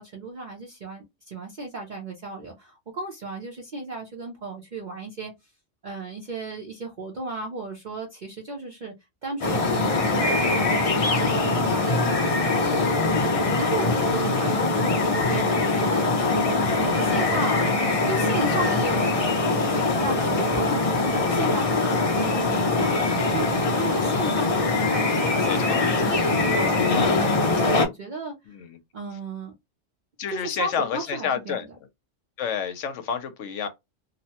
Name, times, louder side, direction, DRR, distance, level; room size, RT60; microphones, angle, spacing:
voice 1, 0.0-5.3 5.8-8.9 9.2-16.1 16.8-17.7 18.1-19.2 19.5-28.3 28.9-29.5 30.3-31.6, right 2 dB, 45° right, 0.7 m, -35 dB
sound 1, 9.4-27.9, left 3 dB, 45° left, 0.4 m, -22 dB
voice 2, 16.5-17.5 25.1-26.2 28.5-28.8 30.2-31.7 32.4-33.7, left 7 dB, 75° left, 1.0 m, -31 dB
2.8 x 2.1 x 2.8 m
omnidirectional pair, 1.3 m